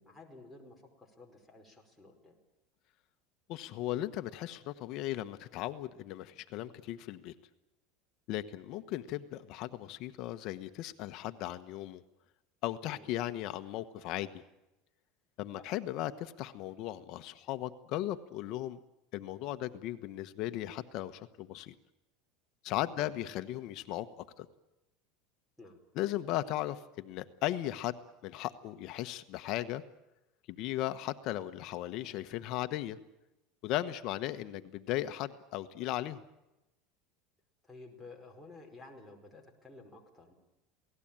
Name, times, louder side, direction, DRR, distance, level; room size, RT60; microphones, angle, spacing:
voice 1, 0.0-2.4 12.9-13.1 15.6-15.7 22.9-23.1 25.6-25.8 37.6-40.3, left 2 dB, ahead, -1 dB, 5.2 m, -53 dB
voice 2, 3.5-7.3 8.3-12.0 12.6-14.4 15.4-18.8 19.1-21.7 22.6-24.1 24.4-24.5 26.0-28.0 28.2-29.8 30.5-33.0 33.6-36.2, left 14 dB, 55° left, 10 dB, 1.2 m, -37 dB
28.0 x 18.5 x 9.0 m, 0.97 s
supercardioid pair, 140°, 0 cm